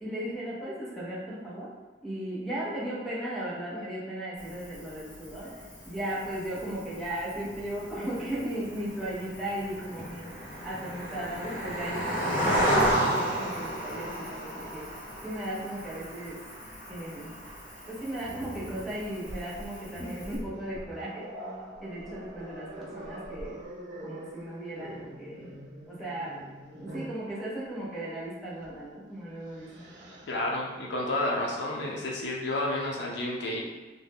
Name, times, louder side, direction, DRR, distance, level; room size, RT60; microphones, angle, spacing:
voice 1, 0.0-1.7 2.0-10.3 10.6-14.9 15.2-16.4 16.9-17.3 17.9-21.3 21.8-23.6 24.0-25.5 25.9-26.4 26.7-29.9, right 1 dB, ahead, -7 dB, 0.7 m, -36 dB
Cricket, 4.4-20.4, equal, 45° left, 1.0 m, -33 dB
Growling, 18.2-27.2 28.6-28.8 29.2-30.3, right 1 dB, 70° right, 0.5 m, -44 dB
voice 2, 30.3-33.6, left 1 dB, 65° left, -2 dB, 0.5 m, -30 dB
2.6 x 2.1 x 3.4 m, 1.3 s
head